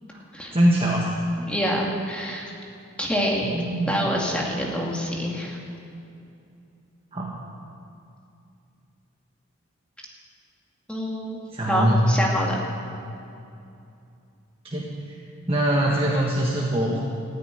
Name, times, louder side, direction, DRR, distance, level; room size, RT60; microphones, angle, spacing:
voice 1, 0.5-1.1 3.4-4.0 7.1-7.3 11.5-12.0 14.6-14.9 15.5-17.0, right 1 dB, 25° right, -4 dB, 1.4 m, -22 dB
voice 2, 1.4-2.5 3.0-3.6 3.9-5.6 10.9-11.4 11.7-12.6, equal, 5° left, -3 dB, 2.2 m, -26 dB
15.0 x 9.8 x 9.7 m, 2.6 s
head